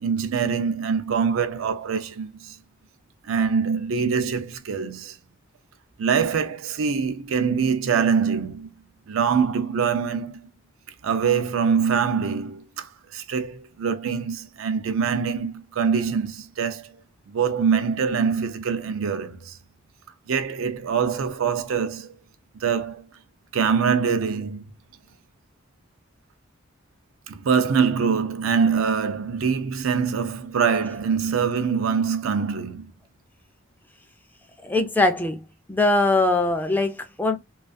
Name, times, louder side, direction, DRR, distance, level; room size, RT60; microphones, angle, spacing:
voice 1, 0.0-2.6 3.3-5.2 6.0-8.7 9.1-10.5 11.0-17.0 17.3-19.6 20.3-22.1 22.6-23.1 23.5-24.6 27.3-32.9, right 6 dB, 70° right, 0.4 m, -24 dB
voice 2, 34.6-35.4 35.7-37.4, left 2 dB, 10° left, 0.4 m, -21 dB
2.4 x 2.3 x 2.5 m
head